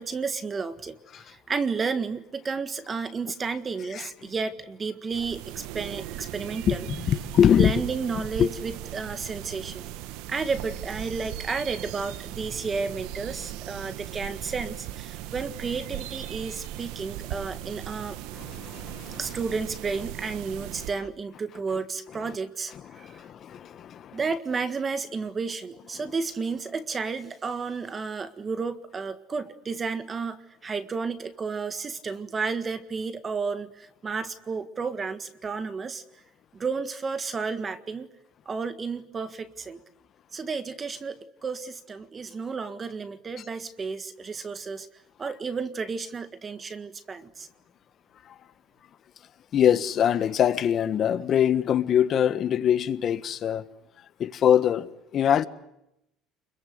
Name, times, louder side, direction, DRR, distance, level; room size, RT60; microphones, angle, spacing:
voice 1, 0.0-6.9 7.6-9.8 10.3-18.2 19.2-23.2 24.1-36.0 36.5-38.1 38.4-39.8 40.3-44.9 45.2-47.5, right 4 dB, 25° right, 1.7 m, -32 dB
sound 1, 5.1-20.9, right 13 dB, 80° right, 1.3 m, -38 dB
voice 2, 6.7-7.7 8.4-8.5 18.3-19.2 22.9-24.2 48.3-48.4 49.5-53.6 54.2-54.9 55.1-55.5, left 9 dB, 40° left, 1.4 m, -23 dB
30.0 x 22.5 x 8.1 m
cardioid pair, 130°, 0 cm